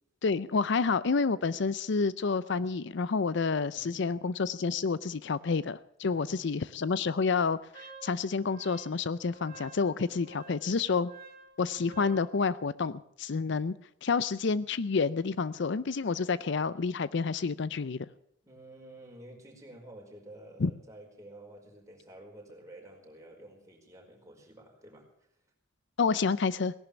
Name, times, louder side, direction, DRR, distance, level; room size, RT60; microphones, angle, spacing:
voice 1, 0.2-11.1 11.6-13.7 14.0-18.1 20.6-20.7 26.0-26.7, left 4 dB, 65° left, 17 dB, 0.5 m, -29 dB
voice 2, 3.7-4.3 6.1-6.8 18.4-25.1, right 1 dB, 15° right, 0 dB, 4.8 m, -51 dB
Wind instrument woodwind instrument, 7.7-12.3, right 3 dB, 50° right, 2.8 m, -51 dB
18.5 x 11.5 x 7.0 m, 0.71 s
head